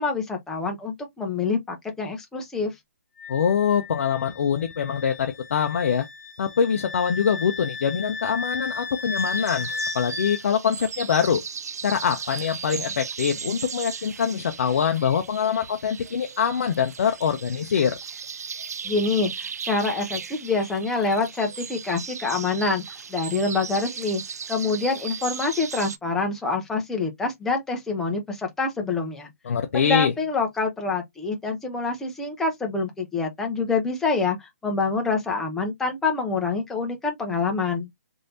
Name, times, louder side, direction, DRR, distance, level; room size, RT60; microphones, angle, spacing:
voice 1, 0.0-2.7 18.8-22.8 23.1-24.2 24.5-29.3 29.7-37.9, left 4 dB, 5° left, 0.5 m, -26 dB
Wind instrument woodwind instrument, 3.2-10.4, left 4 dB, 90° left, 0.8 m, -35 dB
voice 2, 3.3-6.1 6.4-9.7 9.9-11.4 11.8-18.0 29.4-30.1, left 7 dB, 55° left, 0.5 m, -24 dB
sound 1, 9.2-26.0, right 6 dB, 85° right, 0.4 m, -37 dB
3.2 x 2.7 x 2.7 m
hypercardioid pair, 160°, 8 cm